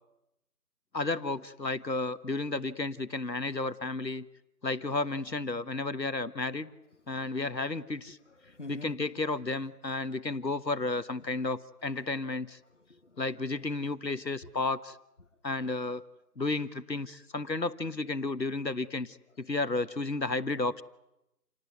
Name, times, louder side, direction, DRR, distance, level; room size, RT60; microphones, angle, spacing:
voice 1, 0.9-4.2 4.6-6.7 7.1-8.2 8.7-12.6 13.2-15.0 15.4-16.0 16.4-20.8, left 3 dB, 90° left, 1.4 m, -32 dB
voice 2, 8.3-9.1 11.2-11.5 12.7-13.2 14.4-14.5 19.4-19.5, left 2 dB, 45° left, 1.3 m, -47 dB
28.5 x 19.0 x 9.5 m
figure-of-eight pair, 165°, 49 cm